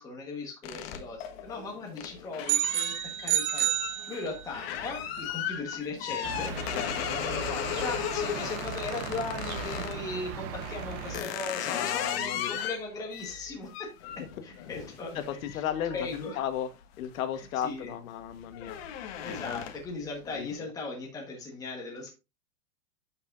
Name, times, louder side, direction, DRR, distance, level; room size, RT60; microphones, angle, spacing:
voice 1, 0.0-6.5 7.1-15.2 15.5-15.6 15.9-16.4 17.6-17.9 19.2-22.1, left 3 dB, 10° left, 1.3 m, -38 dB
sound 1, 0.6-10.0 10.6-17.1 17.5-17.8 18.1-20.0, left 9 dB, 45° left, 1.2 m, -36 dB
sound 2, 2.5-4.7, right 12 dB, 75° right, 1.3 m, -29 dB
sound 3, 6.2-11.2, right 7 dB, 20° right, 0.6 m, -38 dB
voice 2, 11.7-12.7 14.2-14.3 15.1-16.7 17.0-18.8 19.3-19.6 20.3-20.5, left 10 dB, 65° left, 1.4 m, -34 dB
11.5 x 5.8 x 2.5 m
supercardioid pair, 170°, 43 cm